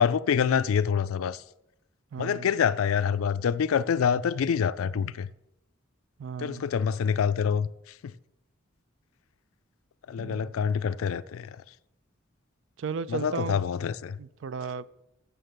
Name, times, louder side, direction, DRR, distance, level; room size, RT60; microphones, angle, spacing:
voice 1, 0.0-1.4 2.2-5.3 6.4-7.7 8.0-8.1 10.1-11.6 13.1-14.2, left 7 dB, 85° left, 0.4 m, -26 dB
voice 2, 2.1-2.5 6.2-6.7 10.2-10.5 12.8-13.6 14.2-14.9, right 5 dB, 65° right, 0.3 m, -35 dB
6.8 x 6.6 x 7.4 m
head